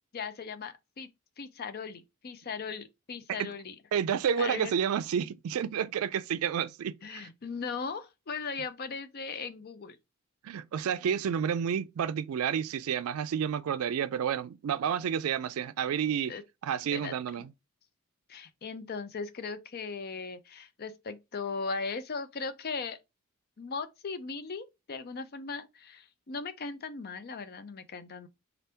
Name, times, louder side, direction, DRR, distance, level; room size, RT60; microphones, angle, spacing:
voice 1, 0.1-1.1 1.4-3.8 4.4-4.7 7.0-10.0 16.3-16.4 16.9-17.1 18.3-23.0 23.6-28.3, left 4 dB, 45° left, 0.5 m, -38 dB
voice 2, 3.9-7.3 10.4-16.3 16.6-17.5, right 8 dB, 80° right, 0.3 m, -30 dB
3.9 x 3.4 x 2.8 m
head